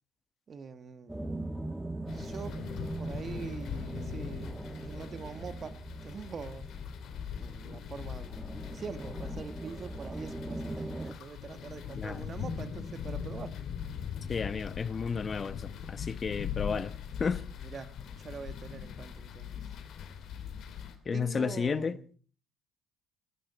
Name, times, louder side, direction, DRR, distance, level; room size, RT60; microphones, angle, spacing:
voice 1, 0.5-1.2 2.1-2.6 3.0-6.7 7.3-13.6 17.6-19.6 21.1-22.2, right 5 dB, 45° right, 1.5 m, -44 dB
sound 1, 1.1-11.1, right 2 dB, 10° right, 2.0 m, -41 dB
sound 2, 2.1-20.9, left 8 dB, 65° left, 2.7 m, -41 dB
voice 2, 14.3-16.9 17.2-17.4 21.1-22.0, left 5 dB, 40° left, 1.0 m, -32 dB
20.0 x 15.0 x 4.2 m
supercardioid pair, 60°, 0 cm